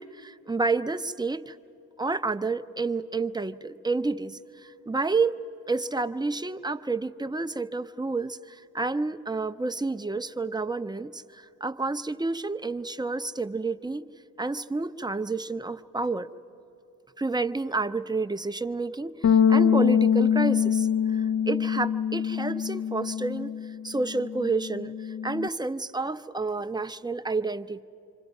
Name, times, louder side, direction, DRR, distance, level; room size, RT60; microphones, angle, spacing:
voice 1, 0.0-1.6 2.0-5.3 5.7-14.0 14.4-16.3 17.2-27.8, right 3 dB, 10° right, 10 dB, 0.5 m, -30 dB
Bass guitar, 19.2-25.5, left 8 dB, 45° left, 0.4 m, -24 dB
28.5 x 26.0 x 5.4 m, 2.9 s
wide cardioid pair, 125°, 36 cm